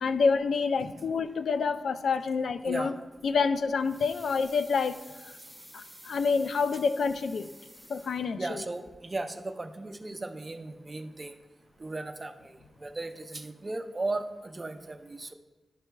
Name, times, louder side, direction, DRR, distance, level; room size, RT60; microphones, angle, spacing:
voice 1, 0.0-2.9 3.2-5.3 5.7-7.5 7.9-8.6, left 5 dB, 85° left, 11 dB, 0.3 m, -28 dB
sound 1, 3.8-8.6 8.8-8.9, equal, 15° left, 1.9 m, -51 dB
voice 2, 8.3-11.3 11.8-12.3 12.8-14.3 14.5-15.3, right 2 dB, 25° right, 7 dB, 0.4 m, -36 dB
11.5 x 5.5 x 2.3 m, 1.2 s
wide cardioid pair, 140°, 0 cm